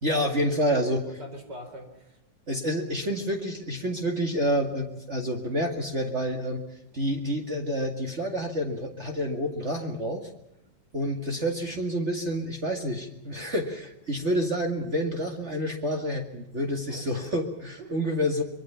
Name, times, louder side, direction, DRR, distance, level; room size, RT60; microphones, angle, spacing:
voice 1, 0.0-1.0 2.5-6.6 6.9-10.3 10.9-18.4, equal, 40° right, 3 dB, 2.5 m, -28 dB
voice 2, 0.7-2.2 16.9-17.1 17.8-18.1, right 2 dB, 65° right, 6 dB, 5.0 m, -42 dB
25.0 x 22.5 x 5.8 m, 0.84 s
omnidirectional pair, 2.0 m